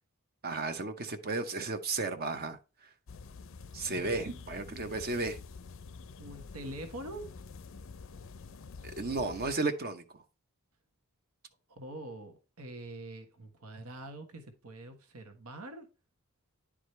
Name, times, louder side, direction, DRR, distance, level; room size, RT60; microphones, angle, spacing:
voice 1, 0.4-2.6 3.7-5.4 9.0-10.0, right 3 dB, 45° right, 0.7 m, -33 dB
sound 1, 3.1-9.5, left 4 dB, 60° left, 0.5 m, -48 dB
voice 2, 3.9-4.7 6.2-7.3 11.7-15.9, right 1 dB, 85° right, 1.3 m, -45 dB
10.5 x 4.9 x 3.2 m
head